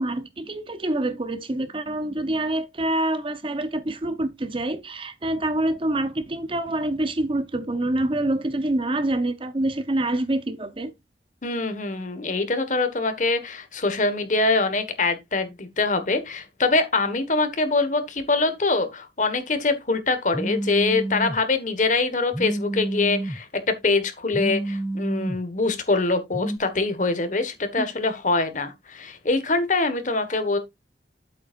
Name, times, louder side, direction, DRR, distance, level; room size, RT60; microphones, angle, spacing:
voice 1, 0.0-10.9 27.8-27.9, right 1 dB, 30° right, 0.7 m, -26 dB
voice 2, 11.4-30.6, left 3 dB, 45° left, 1.4 m, -24 dB
Telephone, 20.3-21.4 22.3-23.4 24.3-25.4 26.3-26.6, right 1 dB, 5° right, 0.4 m, -29 dB
8.1 x 7.9 x 2.5 m
head